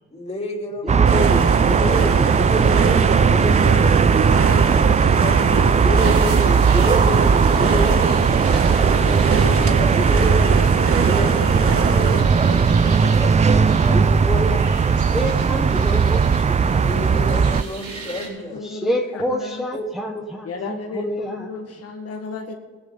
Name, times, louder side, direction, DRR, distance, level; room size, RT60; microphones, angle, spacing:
voice 1, 0.1-1.1 1.8-1.9 4.1-6.0 8.9-10.2 11.9-14.2 15.1-15.3 16.6-18.6 19.7-19.8, left 1 dB, 20° left, 0 dB, 3.4 m, -33 dB
voice 2, 0.8-4.1 5.8-8.6 10.0-12.2 13.9-16.9 18.6-21.5, equal, ahead, 1 dB, 1.2 m, -28 dB
sound 1, 0.9-17.6, right 6 dB, 25° right, 0.4 m, -17 dB
sound 2, 1.0-12.2, right 5 dB, 50° right, 1.2 m, -24 dB
sound 3, 5.9-18.3, right 3 dB, 75° right, 4.2 m, -36 dB
voice 3, 18.4-19.7 20.4-22.5, left 4 dB, 50° left, 1 dB, 1.9 m, -34 dB
19.0 x 10.5 x 4.1 m, 1.5 s
cardioid pair, 90°, 30 cm